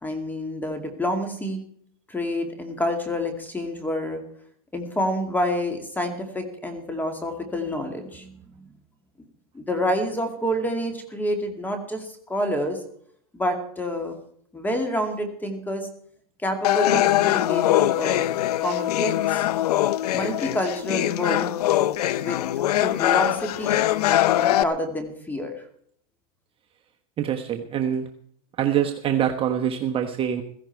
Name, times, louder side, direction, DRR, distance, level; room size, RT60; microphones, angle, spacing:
voice 1, 0.0-1.6 2.1-4.2 4.7-8.7 9.5-12.8 13.3-14.2 14.5-15.9 16.4-18.3 18.6-19.4 20.1-21.5 22.2-22.5 22.8-23.8 24.4-25.6, left 1 dB, 10° left, 5 dB, 2.3 m, -28 dB
sound 1, 16.6-24.6, left 13 dB, 85° left, 0.7 m, -22 dB
voice 2, 27.2-28.1 28.6-30.4, right 9 dB, 30° right, 4 dB, 1.2 m, -24 dB
16.5 x 15.5 x 4.6 m, 0.64 s
supercardioid pair, 135°, 20 cm